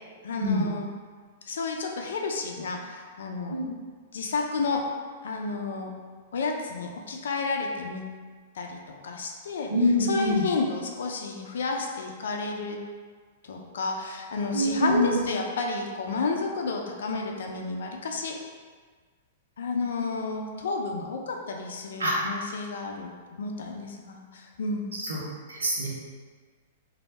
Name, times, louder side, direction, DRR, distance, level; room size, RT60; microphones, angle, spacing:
voice 1, 0.2-0.9 1.4-3.6 4.1-4.8 5.2-5.9 6.3-8.0 8.5-8.8 9.0-9.7 10.0-12.8 13.4-18.3 19.6-23.1 23.4-24.9, left 3 dB, 70° left, 2 dB, 0.6 m, -31 dB
voice 2, 9.7-10.4 14.5-15.2 22.0-22.1 24.9-25.2 25.5-25.9, left 1 dB, 85° right, -3 dB, 1.0 m, -25 dB
3.2 x 2.7 x 4.1 m, 1.5 s
hypercardioid pair, 110°, 0 cm